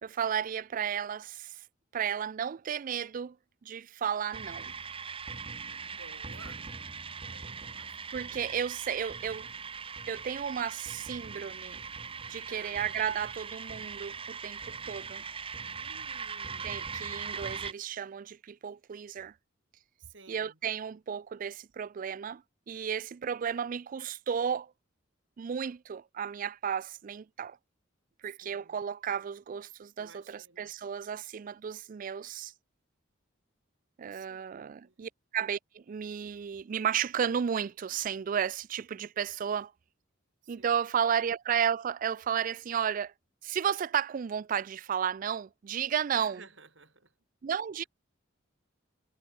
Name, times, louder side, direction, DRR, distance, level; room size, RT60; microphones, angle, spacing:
voice 1, 0.0-1.5 1.9-3.4 3.6-4.7 8.1-9.5 10.1-11.8 12.3-15.2 16.6-19.3 20.3-24.7 25.4-27.6 28.2-32.5 34.0-39.7 40.5-43.1 43.4-46.4 47.4-47.8, right 8 dB, 45° right, 0.3 m, -33 dB
sound 1, 4.3-17.7, right 5 dB, 30° right, 1.0 m, -40 dB
voice 2, 5.8-6.7 7.1-8.0 8.2-8.6 12.5-12.9 15.8-17.1 20.0-20.6 28.4-28.8 30.0-30.7 34.0-34.5 34.8-34.9 40.4-40.7 46.1-47.1, right 4 dB, 75° right, 7.4 m, -55 dB
head